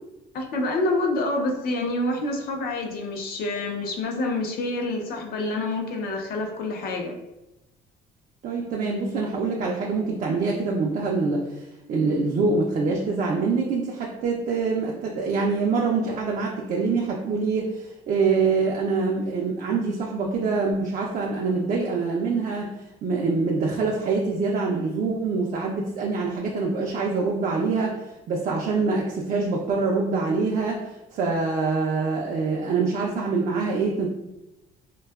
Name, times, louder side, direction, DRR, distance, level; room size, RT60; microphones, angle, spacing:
voice 1, 0.3-7.2, left 2 dB, 65° left, 2 dB, 0.5 m, -27 dB
voice 2, 8.4-11.6 11.9-22.7 23.0-28.0 28.3-30.8 31.1-34.1, right 4 dB, 50° right, -1 dB, 0.4 m, -25 dB
2.6 x 2.2 x 2.2 m, 0.94 s
cardioid pair, 110°, 17 cm